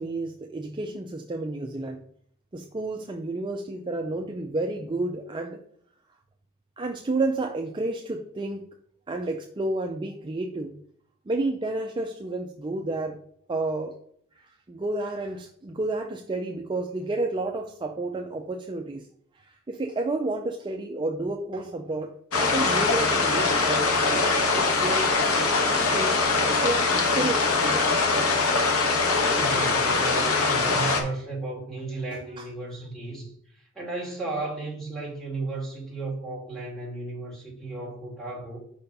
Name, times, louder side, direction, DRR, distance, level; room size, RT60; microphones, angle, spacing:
voice 1, 0.0-2.0 2.5-5.6 6.8-8.7 9.1-10.8 11.3-13.2 13.5-14.0 14.4-19.1 19.3-25.2 25.6-27.6 30.9-31.0 32.1-32.5, right 2 dB, 20° right, 0.4 m, -31 dB
sound 1, 22.3-31.0, left 3 dB, 75° left, 1.2 m, -23 dB
voice 2, 29.3-33.3 33.8-38.6, right 2 dB, ahead, 2.0 m, -34 dB
5.3 x 4.3 x 5.2 m
head